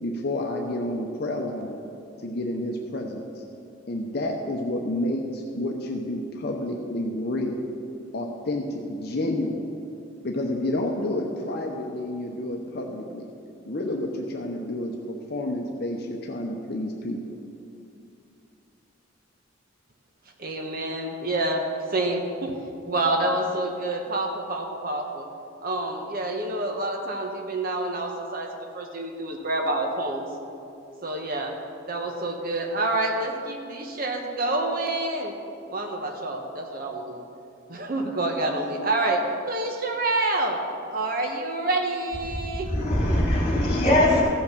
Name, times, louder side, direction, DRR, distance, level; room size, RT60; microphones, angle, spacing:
voice 1, 0.0-1.8 2.2-3.4 3.9-7.7 8.1-9.6 10.2-13.3 13.7-17.2, left 1 dB, 50° left, 1 dB, 0.8 m, -29 dB
voice 2, 20.4-22.6 22.8-25.3 25.6-30.2 31.0-31.6 31.9-35.3 35.7-37.2 37.7-39.2 39.5-40.6 40.9-42.7, right 2 dB, 45° right, 3 dB, 1.0 m, -28 dB
voice 3, 42.3-44.2, left 1 dB, 30° left, -4 dB, 3.1 m, -22 dB
14.5 x 5.8 x 6.7 m, 2.6 s
head